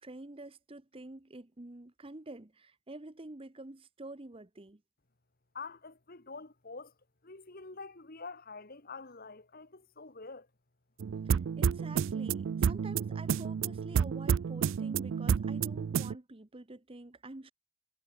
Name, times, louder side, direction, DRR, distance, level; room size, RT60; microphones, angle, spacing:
voice 1, 0.0-4.8 11.2-17.5, right 2 dB, 25° right, 0.8 m, -48 dB
voice 2, 5.5-6.9 7.2-10.5, left 4 dB, 40° left, 1.7 m, -46 dB
sound 1, 11.0-16.1, right 7 dB, 55° right, 0.3 m, -30 dB
head